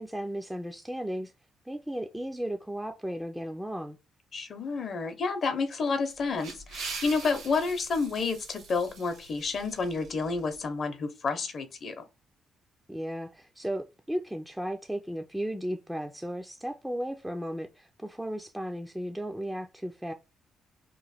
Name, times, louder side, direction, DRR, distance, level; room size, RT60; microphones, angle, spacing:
voice 1, 0.0-1.3 1.7-4.0 12.9-20.1, equal, 5° right, 0.4 m, -35 dB
voice 2, 4.3-12.1, left 4 dB, 50° left, 0.7 m, -30 dB
sound 1, 6.1-10.6, right 4 dB, 90° right, 1.1 m, -43 dB
3.0 x 2.2 x 4.1 m
cardioid pair, 90°, 0 cm